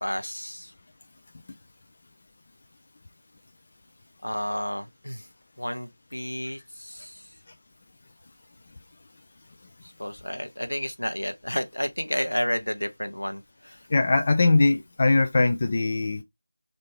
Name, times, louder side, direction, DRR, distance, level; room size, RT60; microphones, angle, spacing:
voice 1, 0.0-0.7 4.2-5.3 5.6-7.2 10.0-13.8, equal, 75° left, 0.7 m, -31 dB
voice 2, 13.9-16.2, left 3 dB, 30° left, 0.3 m, -21 dB
4.1 x 2.6 x 3.1 m
figure-of-eight pair, 170°, 0 cm